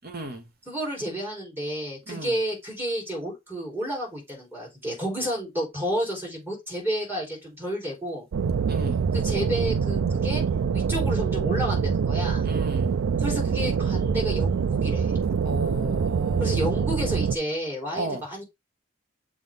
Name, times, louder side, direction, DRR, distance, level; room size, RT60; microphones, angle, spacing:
voice 1, 0.0-0.4 2.1-2.3 8.7-9.0 12.4-12.9 15.4-16.5 17.9-18.2, right 1 dB, 50° right, 1.4 m, -34 dB
voice 2, 0.7-8.3 9.1-10.4 10.7-12.4 13.2-15.1 16.4-18.4, equal, 10° right, 4.1 m, -31 dB
sound 1, 8.3-17.4, right 6 dB, 85° right, 0.4 m, -25 dB
7.1 x 3.8 x 3.6 m
head